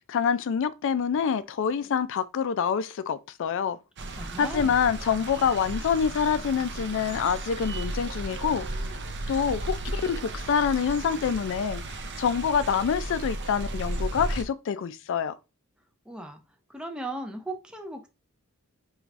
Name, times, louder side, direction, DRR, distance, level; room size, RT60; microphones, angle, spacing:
voice 1, 0.1-3.8 4.4-8.6 9.3-11.8 12.2-15.3, left 7 dB, 60° left, 0.3 m, -26 dB
sound 1, 4.0-14.4, right 2 dB, 55° right, 0.6 m, -34 dB
voice 2, 4.1-4.7 16.1-16.4 16.7-18.1, right 1 dB, 5° right, 0.4 m, -37 dB
4.6 x 3.1 x 2.4 m
head